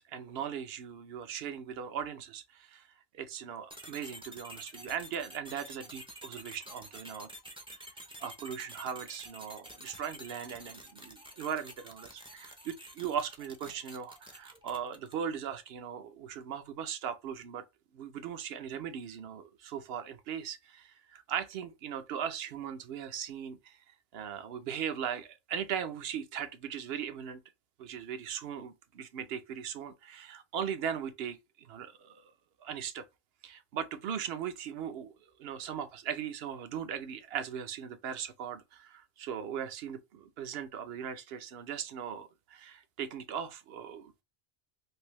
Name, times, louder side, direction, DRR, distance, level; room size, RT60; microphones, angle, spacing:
voice 1, 0.0-2.9 3.1-7.3 8.2-17.6 17.9-23.8 24.1-27.4 27.8-32.3 32.6-33.1 33.4-35.1 35.4-44.2, right 8 dB, 70° right, 0.8 m, -39 dB
sound 1, 3.7-15.3, equal, 5° right, 0.4 m, -49 dB
3.3 x 2.7 x 3.0 m
omnidirectional pair, 1.1 m